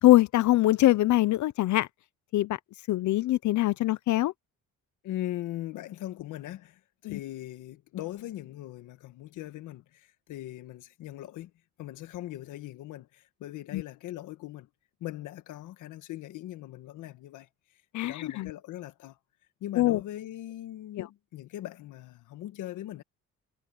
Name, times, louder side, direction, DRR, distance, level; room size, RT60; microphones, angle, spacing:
voice 1, 0.0-1.9 2.3-2.6 2.9-4.3 7.1-7.2 13.7-13.8 17.9-18.5 19.8-20.0 21.0-21.1, left 16 dB, 70° left, 0.6 m, -23 dB
voice 2, 5.0-11.5 11.8-14.7 15.0-17.5 18.0-19.2 19.6-23.0, left 14 dB, 90° left, 1.6 m, -40 dB
cardioid pair, 90°, 30 cm